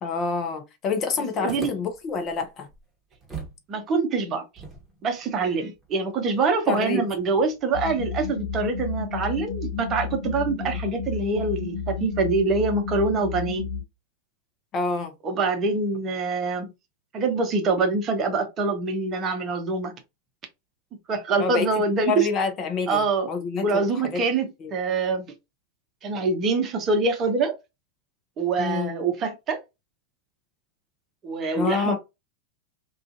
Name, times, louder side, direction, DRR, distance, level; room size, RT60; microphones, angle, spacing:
voice 1, 0.0-2.7 6.7-7.0 10.5-10.7 14.7-15.1 21.4-21.7 22.1-23.0 23.3-23.9 24.1-24.2 24.6-24.7 28.6-28.9 31.6-32.0, left 5 dB, 35° left, 0.6 m, -27 dB
voice 2, 1.4-1.7 3.7-4.4 5.0-13.6 15.2-16.7 17.1-19.9 21.1-22.3 22.9-23.3 23.6-25.3 26.0-27.6 28.4-29.6 31.2-32.0, right 4 dB, 30° right, 0.7 m, -25 dB
sound 1, 1.5-3.6 3.9-4.0 4.5-7.7, right 3 dB, 15° right, 1.0 m, -42 dB
sound 2, 7.7-13.8, left 5 dB, 75° left, 0.4 m, -32 dB
2.4 x 2.3 x 2.5 m
figure-of-eight pair, 95°, 0 cm